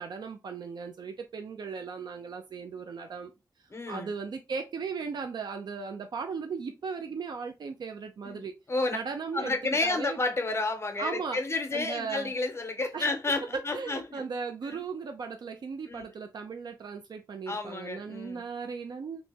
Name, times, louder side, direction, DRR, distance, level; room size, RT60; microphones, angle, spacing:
voice 1, 0.0-3.3 3.9-8.5 8.9-9.6 9.8-10.2 11.0-11.4 11.7-12.3 12.9-13.1 13.4-19.2, right 5 dB, 90° right, 0.4 m, -37 dB
voice 2, 3.7-4.1 8.2-9.0 9.3-14.2 14.7-14.8 15.9-16.0 17.5-18.4, left 3 dB, 40° left, 0.7 m, -31 dB
3.0 x 2.7 x 3.4 m
wide cardioid pair, 120°, 7 cm